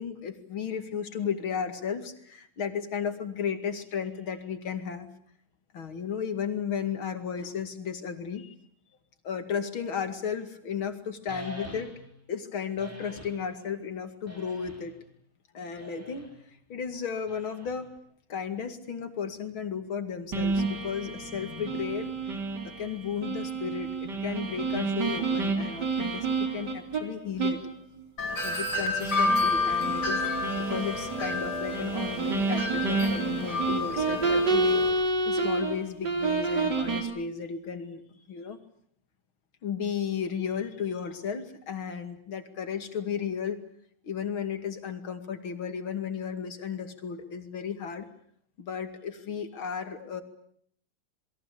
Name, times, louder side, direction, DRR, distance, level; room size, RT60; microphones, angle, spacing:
voice 1, 0.0-5.1 5.7-8.5 9.2-11.9 12.3-15.0 15.5-17.9 18.3-22.2 22.6-27.6 28.4-30.2 30.5-34.8 35.2-38.0 38.3-38.6 39.6-43.6 44.0-48.1 48.6-50.2, left 7 dB, 85° left, 8 dB, 3.2 m, -34 dB
sound 1, 11.3-12.2 12.8-13.5 14.3-15.0 15.8-16.4 17.3-18.0, equal, 5° right, 4.2 m, -44 dB
sound 2, 20.3-27.0 27.4-27.7 28.0-28.1 29.0-35.8 36.0-37.0, right 3 dB, 55° right, 4.3 m, -29 dB
Wind chime, 28.2-34.9, left 3 dB, 55° left, 5.3 m, -30 dB
28.0 x 22.0 x 8.5 m, 0.65 s
omnidirectional pair, 2.2 m